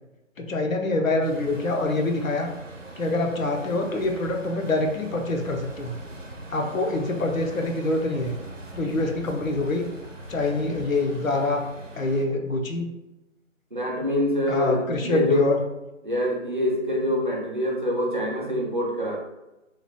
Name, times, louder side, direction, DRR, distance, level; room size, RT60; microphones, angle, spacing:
voice 1, 0.4-2.5 3.0-6.0 6.5-8.3 8.7-9.9 10.3-11.6 11.9-12.9 14.5-15.6, left 2 dB, 85° left, 2 dB, 0.6 m, -25 dB
Truck, 1.2-12.2, right 1 dB, 70° right, 0.7 m, -42 dB
voice 2, 13.7-15.5 16.0-19.2, left 1 dB, 40° right, -2 dB, 0.5 m, -25 dB
2.9 x 2.0 x 2.9 m, 0.99 s
figure-of-eight pair, 155°, 39 cm